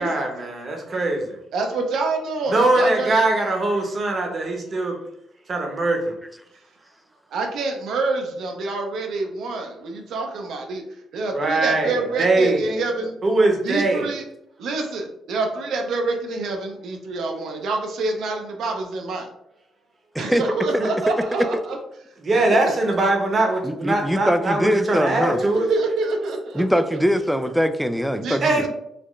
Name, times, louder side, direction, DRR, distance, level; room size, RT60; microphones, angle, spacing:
voice 1, 0.0-1.4 2.5-5.0 5.5-6.1 11.3-12.6 13.2-14.1 20.8-20.9 22.2-25.7 28.4-28.7, right 2 dB, 40° right, 2 dB, 0.9 m, -21 dB
voice 2, 1.5-3.2 7.3-10.8 11.1-13.2 13.6-14.2 14.6-19.3 20.2-21.8 22.3-22.6 25.0-27.0 28.1-28.7, right 3 dB, 75° right, 3 dB, 0.7 m, -27 dB
voice 3, 23.6-25.4 26.5-28.7, equal, ahead, 10 dB, 0.3 m, -22 dB
4.1 x 2.1 x 3.1 m, 0.78 s
cardioid pair, 90°, 0 cm